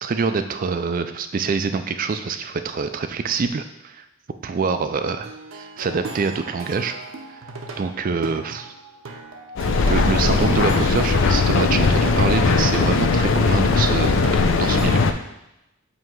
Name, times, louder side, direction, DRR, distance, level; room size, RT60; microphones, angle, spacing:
voice 1, 0.0-4.0 4.4-7.0 7.3-7.4 7.8-8.7 9.9-15.1, right 4 dB, 40° right, 9 dB, 0.3 m, -25 dB
Plucked string instrument, 5.2-15.0, right 3 dB, 65° right, 0.7 m, -37 dB
Mechanical fan, 9.6-15.1, left 4 dB, 60° left, 0.4 m, -19 dB
7.6 x 2.9 x 4.6 m, 0.89 s
head